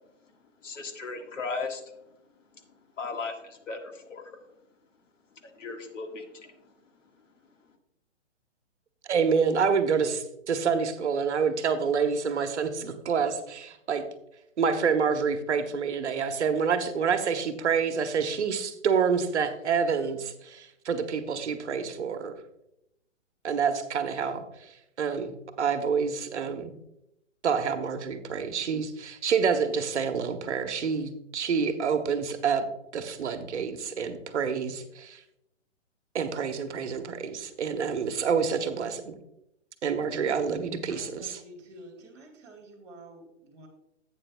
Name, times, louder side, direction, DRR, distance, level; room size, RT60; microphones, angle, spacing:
voice 1, 0.6-1.8 3.0-4.3 5.4-6.5, left 4 dB, 80° left, 4 dB, 1.6 m, -36 dB
voice 2, 9.1-14.1 14.6-22.3 23.4-24.7 25.0-25.3 25.6-26.7 27.4-32.7 32.9-35.2 36.1-39.1 39.8-41.4, right 6 dB, 65° right, 8 dB, 1.1 m, -27 dB
voice 3, 40.9-43.7, right 1 dB, 5° right, -9 dB, 1.5 m, -49 dB
11.5 x 8.8 x 2.2 m, 0.82 s
hypercardioid pair, 180°, 37 cm